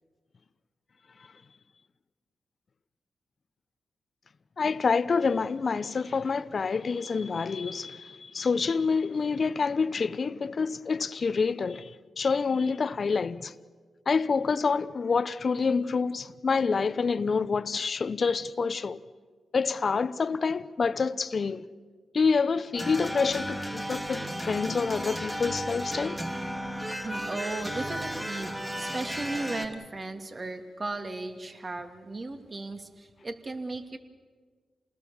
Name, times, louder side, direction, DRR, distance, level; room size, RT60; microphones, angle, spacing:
voice 1, 4.6-13.5 14.1-19.0 19.5-21.6 22.1-26.2, left 5 dB, 55° left, 0.9 m, -27 dB
sound 1, 22.7-29.7, equal, 10° right, 2.8 m, -34 dB
voice 2, 27.0-34.0, right 2 dB, 40° right, 2.7 m, -36 dB
28.0 x 20.0 x 7.2 m
supercardioid pair, 45°, 0 cm